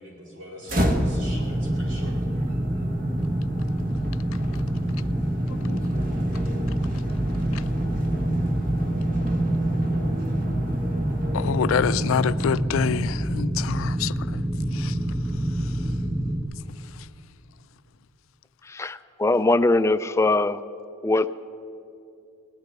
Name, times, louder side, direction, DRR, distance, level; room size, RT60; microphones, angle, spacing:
voice 1, 0.0-2.1, equal, 75° right, 4.0 m, -43 dB
sound 1, 0.7-12.7, right 1 dB, 45° right, 1.2 m, -30 dB
sound 2, 0.8-16.4, right 1 dB, 25° right, 1.1 m, -27 dB
voice 2, 11.3-14.4 14.7-15.0, left 7 dB, 90° left, 0.4 m, -26 dB
voice 3, 18.6-20.6 21.0-21.3, left 2 dB, 15° left, 0.3 m, -21 dB
18.5 x 6.6 x 10.0 m
head